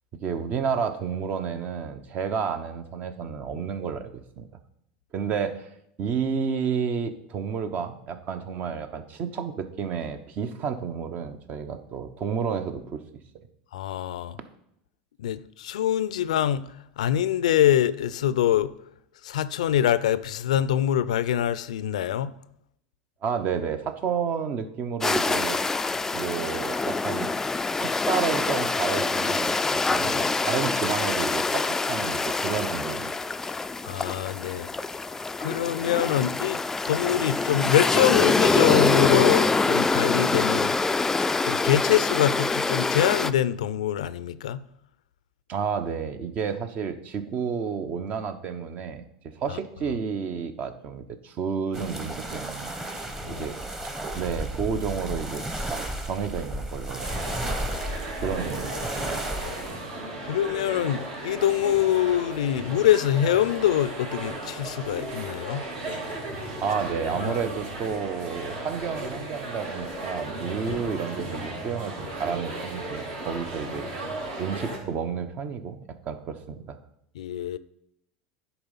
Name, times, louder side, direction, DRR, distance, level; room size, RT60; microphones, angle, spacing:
voice 1, 0.2-4.5 5.1-5.6 6.0-13.0 23.2-25.6 26.1-27.3 27.7-33.1 45.5-52.7 53.3-53.6 54.1-55.4 55.7-57.1 58.2-59.2 66.6-71.9 72.2-74.1 74.4-76.8, right 6 dB, 45° right, 0.9 m, -31 dB
voice 2, 13.7-14.4 15.2-18.7 19.2-22.3 30.0-30.3 33.9-34.7 35.4-36.6 36.9-40.8 41.4-44.6 49.5-49.6 53.2-53.5 59.4-59.5 60.2-65.6 67.2-67.4 77.1-77.6, left 11 dB, 85° left, 0.4 m, -24 dB
sound 1, 25.0-43.3, left 3 dB, 10° left, 0.3 m, -25 dB
sound 2, 51.7-59.7, right 1 dB, 15° right, 1.3 m, -33 dB
sound 3, 57.0-74.8, right 2 dB, 65° right, 3.0 m, -35 dB
10.0 x 4.1 x 5.6 m
hypercardioid pair, 100°, 4 cm